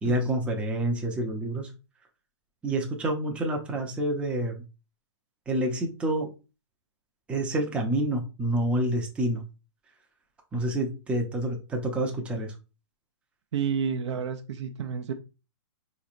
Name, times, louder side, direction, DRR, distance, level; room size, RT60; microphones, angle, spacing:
voice 1, 0.0-1.7 2.6-4.6 5.5-6.3 7.3-9.4 10.5-12.5, right 1 dB, 5° right, 1 dB, 0.5 m, -28 dB
voice 2, 13.5-15.1, right 7 dB, 65° right, 5 dB, 0.6 m, -30 dB
4.0 x 3.0 x 2.4 m, 0.30 s
hypercardioid pair, 145°, 15 cm